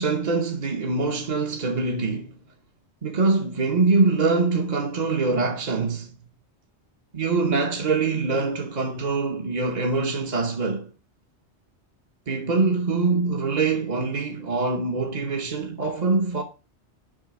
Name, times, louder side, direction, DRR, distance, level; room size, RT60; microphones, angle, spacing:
voice 1, 0.0-2.3 3.0-6.2 7.1-10.9 12.3-16.4, right 3 dB, 40° right, 1.0 m, -24 dB
7.4 x 5.5 x 6.0 m
omnidirectional pair, 1.2 m